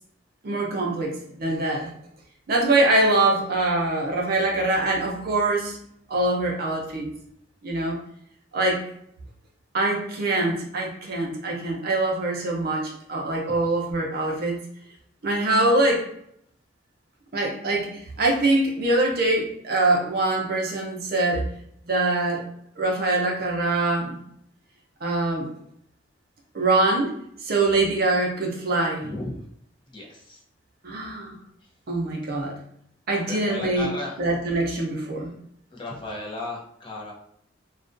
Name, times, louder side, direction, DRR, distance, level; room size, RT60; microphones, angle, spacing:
voice 1, 0.4-1.9 2.5-5.8 6.1-7.1 7.6-8.0 8.5-8.8 9.7-14.6 15.2-16.0 17.3-21.4 21.9-22.5 22.8-24.1 25.0-25.5 26.5-27.1 27.4-29.1 30.8-31.4 31.9-32.5 33.1-33.9 34.2-35.3, right 2 dB, 50° right, -1 dB, 0.5 m, -23 dB
voice 2, 29.9-30.4 33.3-34.2 35.7-37.1, left 2 dB, 25° left, -3 dB, 0.5 m, -35 dB
2.3 x 2.1 x 2.5 m, 0.70 s
head